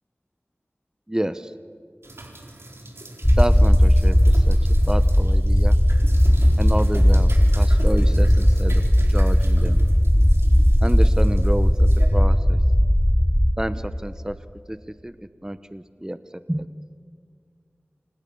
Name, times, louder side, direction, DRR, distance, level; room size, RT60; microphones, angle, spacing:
voice 1, 1.1-1.5 3.4-4.6 4.9-5.8 6.6-7.3 7.6-9.8 10.8-12.6 13.6-14.4 14.7-14.8 15.0-16.7, right 1 dB, 15° right, 12 dB, 0.9 m, -29 dB
sound 1, 2.0-12.1, right 1 dB, 75° right, 4.2 m, -39 dB
Deep Back Ground subwoofer, 3.2-13.5, equal, 5° left, 1.2 m, -17 dB
30.0 x 26.5 x 7.1 m, 2.1 s
wide cardioid pair, 45°, 4 cm